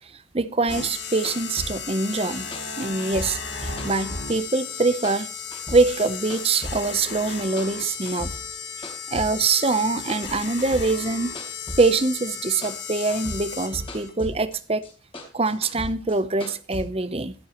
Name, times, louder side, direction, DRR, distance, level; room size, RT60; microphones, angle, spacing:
voice 1, 0.3-2.5 2.8-5.3 5.7-8.4 9.1-11.3 11.8-14.8 15.3-17.3, right 3 dB, 30° right, 0.7 m, -24 dB
sound 1, 0.7-14.1, left 5 dB, 60° left, 2.7 m, -35 dB
sound 2, 0.7-4.8 5.0-7.0 7.2-8.6 8.8-12.4 12.6-14.6 14.8-16.8, left 1 dB, 25° left, 3.7 m, -37 dB
sound 3, 6.1-12.5, left 7 dB, 75° left, 3.4 m, -50 dB
22.0 x 8.1 x 3.0 m
head